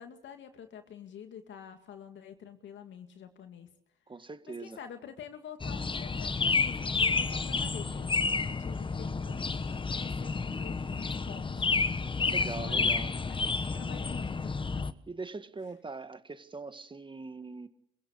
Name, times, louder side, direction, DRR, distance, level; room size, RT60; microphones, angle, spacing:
voice 1, 0.0-3.7 4.6-11.7 12.2-13.1 13.4-14.9, left 8 dB, 70° left, 2.4 m, -47 dB
voice 2, 4.1-4.8 12.3-13.1 15.1-17.7, right 3 dB, 25° right, 1.9 m, -41 dB
sound 1, 5.6-14.9, left 4 dB, 25° left, 1.2 m, -30 dB
25.0 x 16.5 x 8.4 m
cardioid pair, 90°, 20 cm